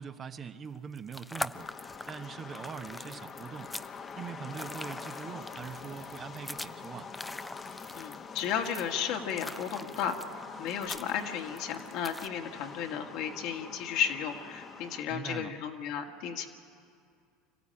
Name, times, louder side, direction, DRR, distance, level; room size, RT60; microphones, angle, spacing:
voice 1, 0.0-1.7 2.1-3.7 4.2-7.1 15.1-15.5, right 6 dB, 35° right, 8 dB, 1.1 m, -42 dB
sound 1, 0.8-12.3, left 1 dB, 10° left, 0.6 m, -43 dB
sound 2, 1.5-15.0, left 5 dB, 35° left, 1.3 m, -45 dB
voice 2, 7.9-16.5, left 8 dB, 60° left, 2 dB, 2.0 m, -34 dB
25.5 x 15.0 x 8.9 m, 2.4 s
hypercardioid pair, 75°, 0 cm